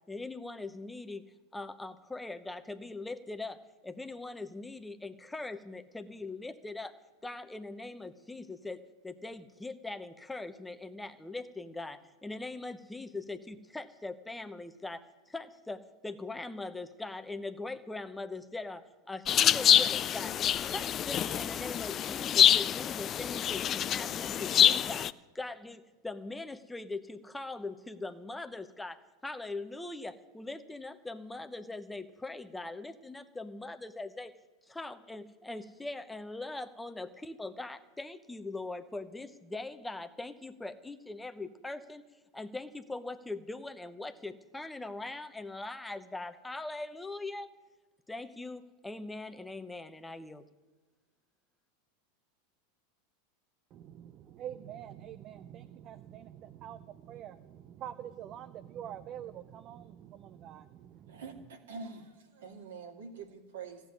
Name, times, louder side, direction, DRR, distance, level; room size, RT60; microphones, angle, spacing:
voice 1, 0.1-6.9 7.2-20.3 20.6-34.3 34.7-42.0 42.3-47.5 48.1-50.4, left 2 dB, 10° left, 9 dB, 0.9 m, -41 dB
sound 1, 19.3-25.1, left 10 dB, 35° left, 0.4 m, -26 dB
voice 2, 53.7-61.4, right 10 dB, 40° right, 10 dB, 0.7 m, -46 dB
voice 3, 61.1-63.8, right 4 dB, 70° right, 4 dB, 2.3 m, -45 dB
15.0 x 8.1 x 9.7 m, 1.2 s
figure-of-eight pair, 90°, 0 cm